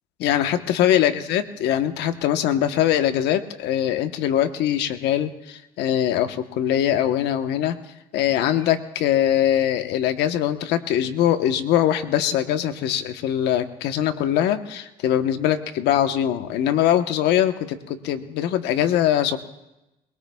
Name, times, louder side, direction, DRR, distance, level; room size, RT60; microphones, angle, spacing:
voice 1, 0.2-7.7 8.1-19.4, left 11 dB, 85° left, 8 dB, 1.1 m, -22 dB
22.0 x 22.0 x 2.3 m, 0.94 s
cardioid pair, 110°, 17 cm